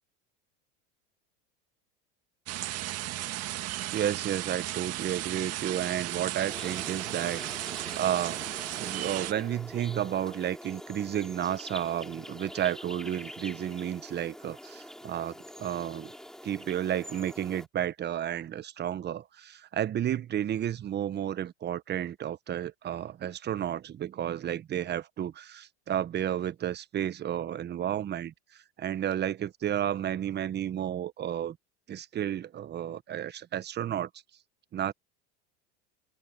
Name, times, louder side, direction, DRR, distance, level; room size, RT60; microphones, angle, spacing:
sound 1, 2.5-9.3, right 15 dB, 45° right, 1.8 m, -35 dB
voice 1, 3.6-8.4 8.7-16.1 16.4-31.6 31.9-34.1 34.7-34.9, right 10 dB, 30° right, 1.1 m, -32 dB
sound 2, 6.4-17.7, equal, ahead, 5.5 m, -45 dB
open air
supercardioid pair, 110°, 35 cm